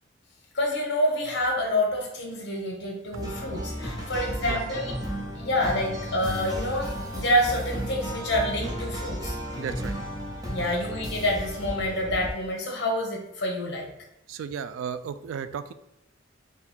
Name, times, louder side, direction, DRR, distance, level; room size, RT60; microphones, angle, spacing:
voice 1, 0.5-4.9 5.4-9.3 10.5-13.9, left 1 dB, 60° left, 0 dB, 1.0 m, -27 dB
sound 1, 3.1-12.3, equal, 20° right, 0.7 m, -34 dB
voice 2, 9.6-10.0 14.3-15.7, right 7 dB, 85° right, 13 dB, 0.3 m, -34 dB
3.8 x 2.3 x 4.2 m, 0.83 s
head